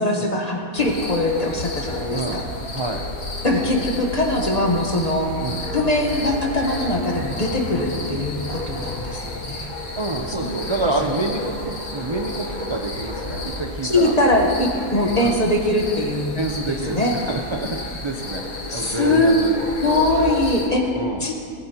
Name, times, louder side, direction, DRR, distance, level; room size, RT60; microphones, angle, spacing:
voice 1, 0.0-2.4 3.4-5.3 5.7-9.6 10.3-10.5 13.8-16.4 16.7-17.1 18.7-19.3 19.8-20.8 21.2-21.3, left 1 dB, 30° left, 0 dB, 1.2 m, -21 dB
sound 1, 0.7-20.7, left 2 dB, 80° left, 2.0 m, -31 dB
voice 2, 2.1-2.4 2.7-3.0 5.4-5.6 10.0-14.1 15.2-15.3 16.3-18.4 18.7-19.5 20.0-20.3 20.9-21.2, right 2 dB, 40° right, 2 dB, 0.4 m, -27 dB
17.5 x 10.5 x 3.0 m, 2.4 s
omnidirectional pair, 1.5 m